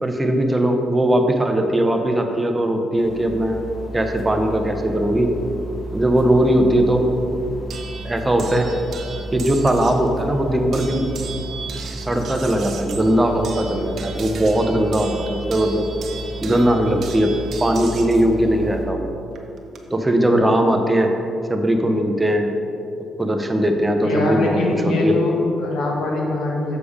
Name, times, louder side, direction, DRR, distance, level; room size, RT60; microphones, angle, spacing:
voice 1, 0.0-3.6 3.9-5.3 5.9-7.1 8.0-8.7 9.3-11.1 12.1-15.9 16.4-17.3 17.6-19.1 19.9-21.1 21.5-22.5 23.2-25.2, right 1 dB, 15° right, 4 dB, 0.9 m, -19 dB
sound 1, 3.0-18.8, right 2 dB, 45° left, 1.4 m, -33 dB
sound 2, 7.7-10.1 10.7-18.3 19.4-19.8, right 5 dB, 60° right, 1.0 m, -37 dB
voice 2, 24.0-26.8, left 2 dB, 75° left, -1 dB, 1.8 m, -22 dB
6.9 x 6.8 x 5.1 m, 2.8 s
cardioid pair, 90°, 0 cm